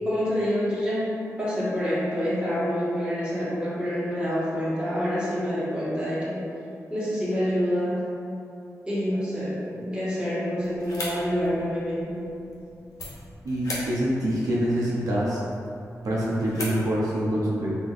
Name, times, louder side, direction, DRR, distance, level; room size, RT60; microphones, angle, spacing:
voice 1, 0.0-6.5 6.9-8.0 8.8-12.3, equal, 15° right, -10 dB, 1.5 m, -27 dB
sound 1, 10.6-17.3, left 1 dB, 80° left, 0.8 m, -40 dB
voice 2, 13.4-15.4 16.0-17.8, equal, 80° right, -6 dB, 0.6 m, -25 dB
3.8 x 3.2 x 2.5 m, 2.6 s
cardioid pair, 70°, 6 cm